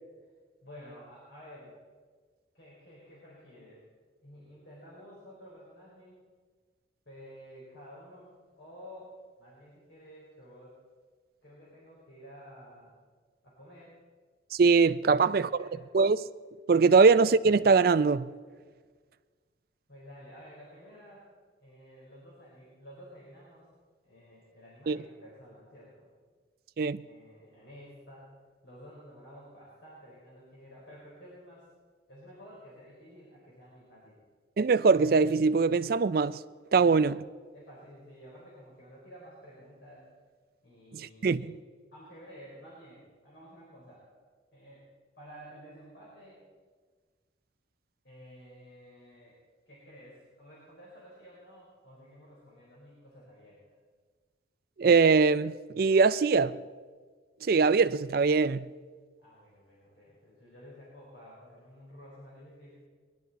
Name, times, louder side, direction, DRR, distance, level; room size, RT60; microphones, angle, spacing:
voice 1, 0.6-1.7 2.5-3.8 4.2-6.2 7.1-9.1 9.4-10.8 11.4-12.9 13.4-14.0 15.1-15.7 19.9-21.3 21.6-23.7 24.0-26.1 27.0-28.3 28.6-31.7 32.1-34.2 36.8-37.0 37.5-40.1 40.6-41.4 41.9-44.0 44.5-44.8 45.2-46.4 48.0-49.3 49.7-53.6 59.2-62.8, equal, 65° left, 4.2 m, -52 dB
voice 2, 14.5-15.7 15.9-16.2 16.7-18.3 24.9-25.0 26.8-27.0 34.6-36.4 36.7-37.2 40.9-41.6 54.8-56.6 57.4-58.7, right 4 dB, 50° right, 0.4 m, -22 dB
21.0 x 11.5 x 4.1 m
head